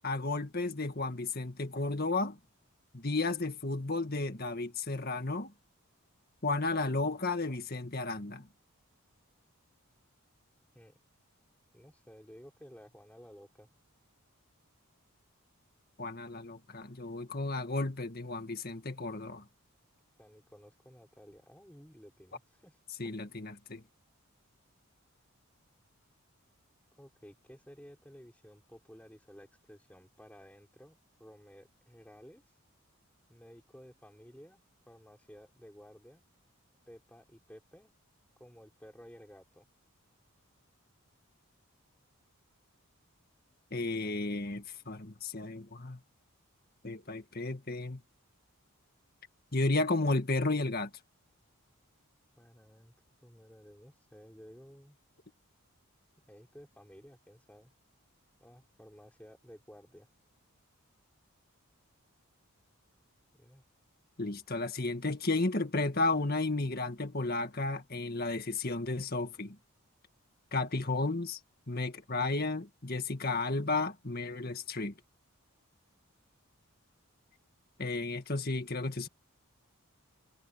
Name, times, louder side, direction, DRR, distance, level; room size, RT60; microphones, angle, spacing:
voice 1, 0.0-2.4 2.9-5.5 6.4-8.5 16.0-19.4 23.0-23.8 43.7-46.0 46.8-48.0 49.5-50.9 64.2-69.6 70.5-71.4 71.7-74.9 77.8-79.1, left 2 dB, 45° left, 1.9 m, -33 dB
voice 2, 11.7-13.7 16.3-16.4 20.2-22.8 23.0-23.2 27.0-32.4 33.3-36.2 36.9-37.9 38.4-39.7 43.8-44.7 52.4-52.9 53.2-55.0 56.3-57.7 58.4-60.1 63.3-63.6, equal, 5° left, 4.9 m, -55 dB
head